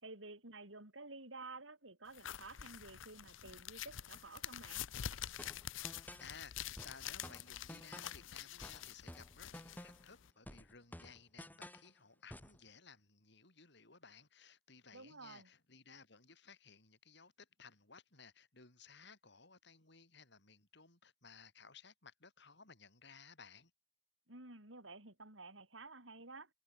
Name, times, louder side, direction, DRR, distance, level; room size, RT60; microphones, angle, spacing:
voice 1, 0.0-4.9 14.9-15.5 24.3-26.5, right 3 dB, 85° right, 6.6 m, -52 dB
sound 1, 2.1-10.3, left 10 dB, 90° left, 0.6 m, -47 dB
sound 2, 5.4-6.3 6.8-8.2 8.6-10.1 10.5-11.9 12.3-12.6, left 1 dB, 10° left, 4.4 m, -52 dB
voice 2, 6.2-23.7, left 5 dB, 65° left, 7.6 m, -59 dB
head